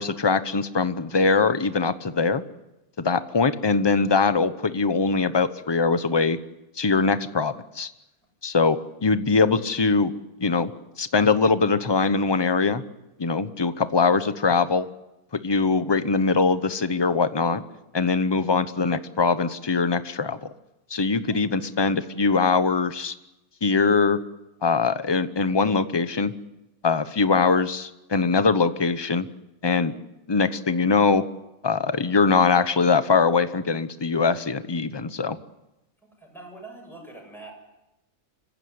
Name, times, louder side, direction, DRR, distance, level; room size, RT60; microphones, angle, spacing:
voice 1, 0.0-2.4 3.0-6.4 6.8-7.9 8.4-10.1 10.4-10.7 11.0-12.8 13.2-14.9 15.3-17.6 17.9-20.4 20.9-23.1 23.6-24.2 24.6-26.3 26.8-29.3 29.6-29.9 30.3-31.2 31.6-35.4, left 4 dB, 20° left, 12 dB, 0.8 m, -22 dB
voice 2, 36.0-37.5, right 2 dB, ahead, 0 dB, 7.2 m, -44 dB
25.5 x 15.5 x 9.5 m, 0.95 s
omnidirectional pair, 1.5 m